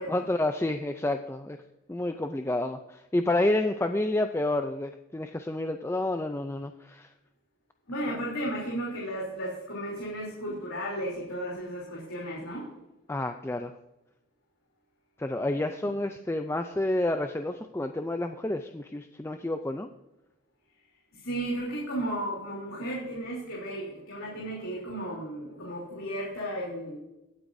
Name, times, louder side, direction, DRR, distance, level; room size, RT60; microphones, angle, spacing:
voice 1, 0.1-1.6 1.9-7.1 13.1-13.7 15.2-19.9, left 1 dB, 10° left, 7 dB, 0.3 m, -29 dB
voice 2, 7.9-12.6 21.2-27.0, right 1 dB, 80° left, -4 dB, 3.2 m, -34 dB
20.0 x 8.0 x 2.6 m, 0.94 s
head